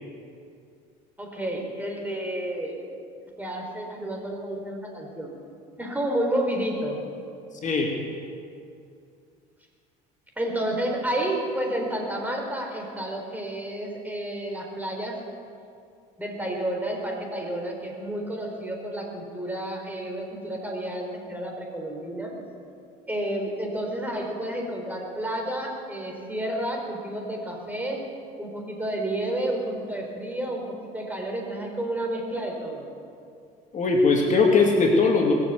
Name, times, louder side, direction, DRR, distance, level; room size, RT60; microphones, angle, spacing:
voice 1, 1.2-2.9 3.4-5.3 5.8-7.0 10.4-15.1 16.2-22.3 23.1-28.0 28.4-32.9, right 1 dB, 10° right, 1 dB, 3.8 m, -30 dB
voice 2, 7.6-8.0 33.7-35.3, left 3 dB, 40° left, 0 dB, 2.5 m, -20 dB
21.0 x 7.3 x 8.2 m, 2.5 s
supercardioid pair, 85°, 19 cm